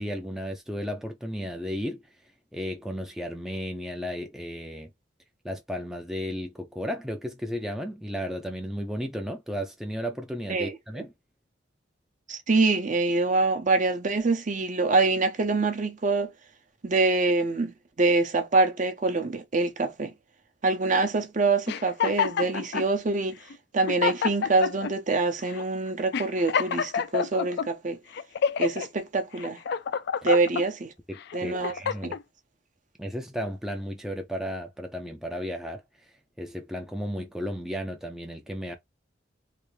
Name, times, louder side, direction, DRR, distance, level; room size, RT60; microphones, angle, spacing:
voice 1, 0.0-2.0 2.5-4.9 5.4-11.1 31.1-32.2 33.0-35.8 36.4-38.7, equal, ahead, 0.5 m, -34 dB
voice 2, 10.5-11.0 12.3-16.3 16.8-20.1 20.6-23.4 23.7-28.0 28.6-29.6 30.2-30.9 31.3-31.7 32.0-32.1, right 3 dB, 45° right, 0.7 m, -25 dB
sound 1, 21.7-22.9 23.5-23.6 23.9-24.9 25.5-25.7 26.1-27.7 28.1-28.9 29.4-30.6 31.2-32.2, left 7 dB, 60° left, 0.4 m, -28 dB
3.4 x 2.5 x 3.1 m
head